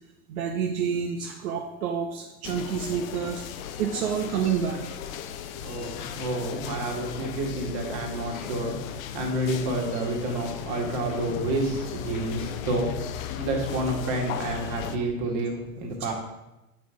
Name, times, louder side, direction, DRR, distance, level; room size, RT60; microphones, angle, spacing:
voice 1, 0.3-3.4 3.8-4.8, right 7 dB, 75° right, 2 dB, 0.8 m, -28 dB
sound 1, 2.4-15.0, left 10 dB, 70° left, 0.7 m, -36 dB
voice 2, 5.6-16.1, right 1 dB, 45° right, 1 dB, 2.0 m, -29 dB
7.7 x 4.2 x 4.9 m, 0.98 s
hypercardioid pair, 115°, 43 cm